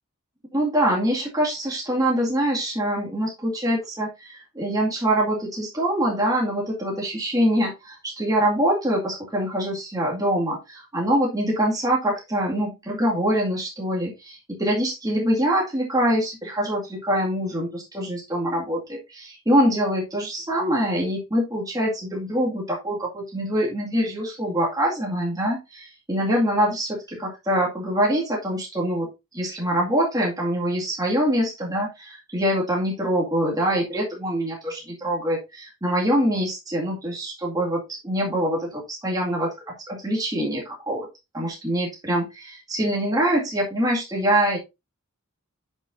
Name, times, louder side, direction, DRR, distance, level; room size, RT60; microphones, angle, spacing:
voice 1, 0.5-29.1 29.3-41.1 41.3-44.6, equal, 15° right, -3 dB, 2.2 m, -24 dB
9.6 x 5.6 x 2.7 m, 0.23 s
head